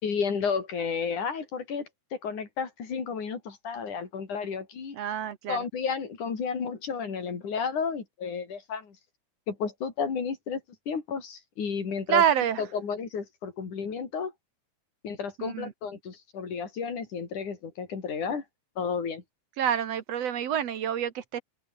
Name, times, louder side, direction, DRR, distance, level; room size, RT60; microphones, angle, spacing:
voice 1, 0.0-5.0 5.5-9.0 9.5-10.6 10.9-12.2 12.6-14.3 15.0-18.4 18.8-19.2, left 6 dB, 85° left, 5.4 m, -32 dB
voice 2, 4.9-5.6 12.1-12.6 15.4-15.7 19.6-21.4, right 9 dB, 60° right, 2.3 m, -27 dB
omnidirectional pair, 3.4 m